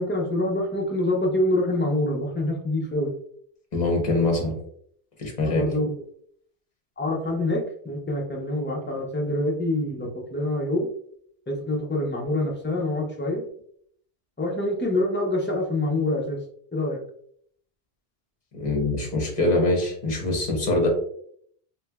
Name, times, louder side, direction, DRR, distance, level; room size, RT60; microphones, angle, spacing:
voice 1, 0.0-3.1 5.4-5.9 7.0-10.9 11.5-13.4 14.4-16.4 16.7-17.0, left 1 dB, 15° left, -1 dB, 0.5 m, -26 dB
voice 2, 3.7-4.6 5.2-5.6 18.5-20.9, left 2 dB, 45° left, 0 dB, 1.0 m, -23 dB
3.2 x 3.1 x 2.3 m, 0.63 s
omnidirectional pair, 1.0 m